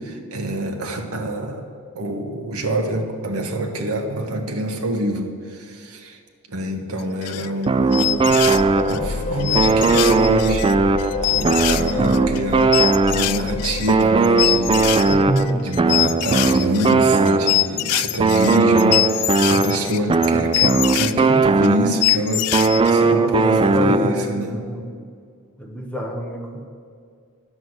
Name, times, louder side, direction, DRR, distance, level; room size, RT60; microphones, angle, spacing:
voice 1, 0.0-1.7 1.9-6.2 6.5-8.4 8.9-22.5 22.9-24.6, right 1 dB, 70° right, 4 dB, 1.3 m, -26 dB
sound 1, 7.0-7.6 7.9-9.0 9.4-21.1 21.6-21.7 22.0-22.9, left 17 dB, 90° left, 0.4 m, -23 dB
sound 2, 7.7-9.2 9.5-13.5 13.9-17.8 18.2-22.1 22.5-24.4, right 4 dB, 25° right, 0.3 m, -18 dB
sound 3, 8.1-15.9, left 3 dB, 35° left, 0.5 m, -29 dB
voice 2, 15.1-15.7 23.1-25.0 25.6-26.7, equal, 5° left, 0 dB, 1.0 m, -27 dB
10.5 x 6.1 x 7.9 m, 2.2 s
head